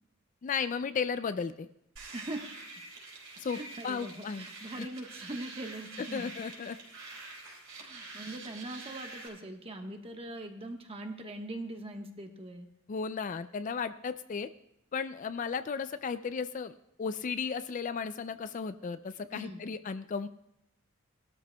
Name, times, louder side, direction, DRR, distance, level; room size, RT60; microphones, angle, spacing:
voice 1, 0.4-1.7 3.4-4.5 4.8-4.9 6.0-6.8 12.9-14.5 14.9-20.3, left 5 dB, 40° left, 12 dB, 0.3 m, -35 dB
sound 1, 2.0-9.3, right 3 dB, 80° right, 4.1 m, -46 dB
voice 2, 2.1-2.5 3.5-6.3 7.7-12.7 19.3-19.7, right 1 dB, 30° right, 4 dB, 1.2 m, -41 dB
19.5 x 12.5 x 2.3 m, 0.82 s
head